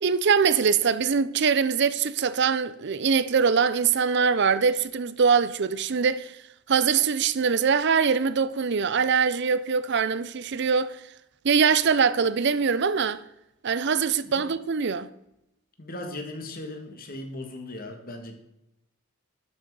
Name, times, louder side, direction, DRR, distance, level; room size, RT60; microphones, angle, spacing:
voice 1, 0.0-6.3 6.7-11.0 11.4-13.2 13.6-15.1, right 6 dB, 55° right, 0.5 m, -23 dB
voice 2, 15.8-18.4, left 1 dB, 45° left, 1.7 m, -38 dB
12.5 x 6.2 x 4.8 m
head